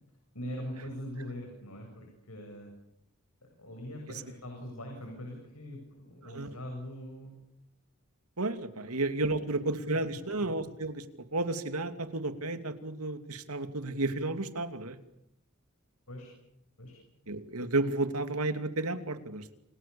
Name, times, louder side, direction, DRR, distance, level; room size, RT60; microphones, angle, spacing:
voice 1, 0.3-2.7 3.4-7.3 8.7-8.9 9.3-9.4 10.0-10.3 16.1-16.3 16.8-16.9, equal, 80° left, 2 dB, 7.9 m, -42 dB
voice 2, 8.4-11.0 11.3-15.0 17.3-19.4, right 2 dB, 85° right, 8 dB, 2.7 m, -32 dB
29.0 x 29.0 x 7.1 m, 0.78 s
head